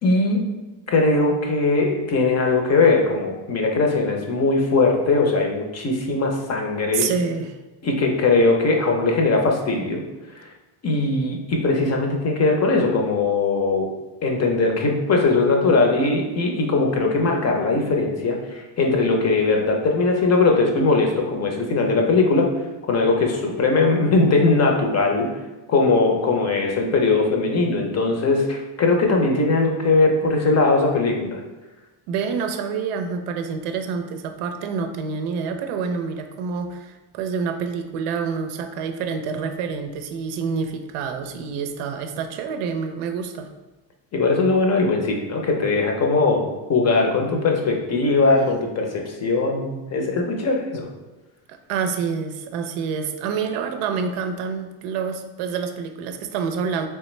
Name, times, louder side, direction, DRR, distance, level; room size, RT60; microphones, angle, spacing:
voice 1, 0.0-0.4 0.9-7.1 7.8-10.0 10.4-10.5 10.8-13.9 14.2-22.5 22.9-25.3 25.7-31.4 44.1-50.9, left 3 dB, 30° left, 2 dB, 0.6 m, -20 dB
voice 2, 6.9-7.6 32.1-43.5 51.5-56.9, right 5 dB, 85° right, 6 dB, 0.6 m, -27 dB
3.4 x 3.2 x 3.1 m, 1.1 s
cardioid pair, 125°, 50 cm